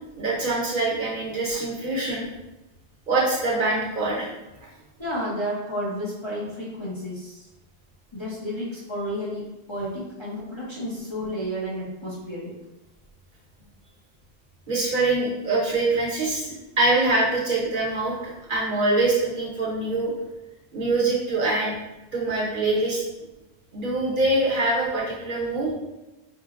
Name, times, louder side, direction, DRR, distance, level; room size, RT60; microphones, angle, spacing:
voice 1, 0.2-2.3 3.1-4.3 4.6-4.7 14.7-20.1 20.7-21.8 22.1-23.0 23.7-25.7, right 2 dB, 55° right, -4 dB, 0.9 m, -24 dB
voice 2, 4.7-7.4 8.1-9.4 9.7-12.5, equal, 30° left, -8 dB, 0.6 m, -31 dB
4.4 x 2.0 x 2.4 m, 1.0 s
omnidirectional pair, 1.1 m